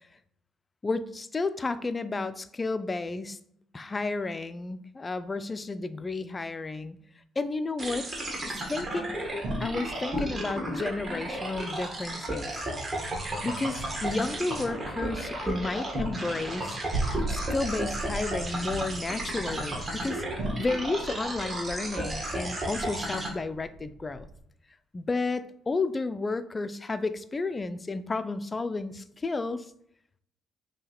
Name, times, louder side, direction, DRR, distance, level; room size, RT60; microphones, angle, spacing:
voice 1, 0.8-3.4 3.7-7.0 7.4-8.1 8.5-9.3 9.6-12.7 13.4-16.8 17.3-20.2 20.6-24.3 24.9-29.7, left 3 dB, 25° left, 12 dB, 0.3 m, -32 dB
sound 1, 7.8-23.3, right 1 dB, 30° right, 1.3 m, -33 dB
sound 2, 8.5-24.4, right 2 dB, 85° right, 1.2 m, -41 dB
5.5 x 2.8 x 2.9 m, 0.69 s
cardioid pair, 90°, 0 cm